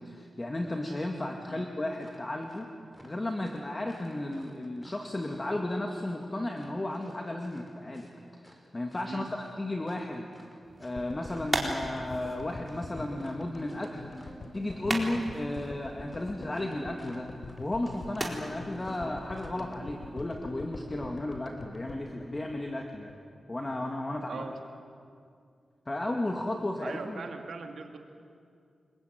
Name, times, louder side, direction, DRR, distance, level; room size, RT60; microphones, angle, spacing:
voice 1, 0.0-2.7 3.0-8.1 8.4-9.3 9.6-10.3 10.8-17.3 17.6-23.1 23.5-24.4 25.9-27.2, left 1 dB, 25° left, 2 dB, 2.1 m, -34 dB
sound 1, 1.9-2.7 2.9-5.6 6.5-8.6 8.9-19.0 19.3-19.5, equal, ahead, 4.5 m, -57 dB
sound 2, 10.6-20.3, right 1 dB, 15° right, 4.0 m, -40 dB
sound 3, 10.9-23.2 23.4-23.5 23.7-23.8, left 2 dB, 50° left, 3.4 m, -44 dB
voice 2, 26.8-28.0, right 5 dB, 80° right, 4 dB, 2.8 m, -40 dB
29.5 x 22.0 x 9.3 m, 2.3 s
wide cardioid pair, 105°, 0 cm